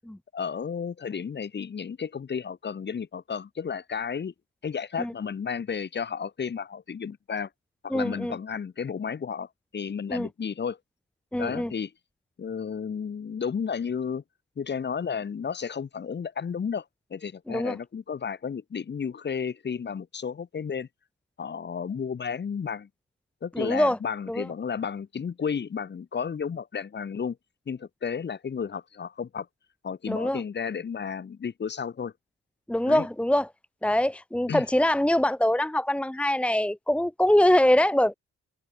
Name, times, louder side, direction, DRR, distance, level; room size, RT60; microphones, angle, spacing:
voice 1, 0.3-4.3 4.6-7.5 7.8-9.5 9.7-10.8 11.4-11.9 12.4-14.2 14.6-16.8 17.1-20.9 21.4-22.9 23.4-27.4 27.7-29.5 29.8-32.1 32.9-33.1 34.5-34.6, left 6 dB, 35° left, 3.4 m, -32 dB
voice 2, 7.9-8.4 10.1-10.3 11.3-11.7 17.5-17.8 23.5-24.0 24.3-24.5 30.1-30.4 32.7-33.5 33.8-38.1, left 1 dB, 5° left, 1.6 m, -23 dB
cardioid pair, 140°, 30 cm